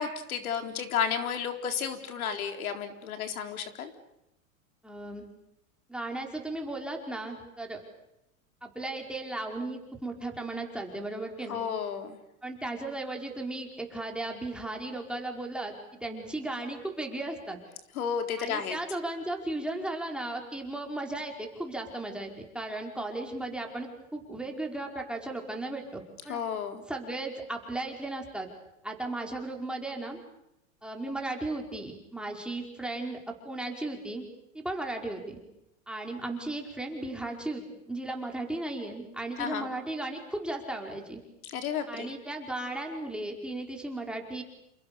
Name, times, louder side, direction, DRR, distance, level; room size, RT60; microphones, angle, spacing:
voice 1, 0.0-3.9 11.5-12.2 18.0-18.8 26.3-26.8 39.4-39.7 41.5-42.1, left 7 dB, 90° left, 6 dB, 4.0 m, -32 dB
voice 2, 4.8-5.3 5.9-7.8 8.6-11.6 12.4-17.6 18.4-26.4 26.9-28.5 28.8-30.2 30.8-34.3 34.5-35.4 35.9-41.2 41.9-44.4, right 2 dB, ahead, 1 dB, 5.0 m, -36 dB
29.0 x 29.0 x 6.9 m, 0.87 s
supercardioid pair, 130°, 42 cm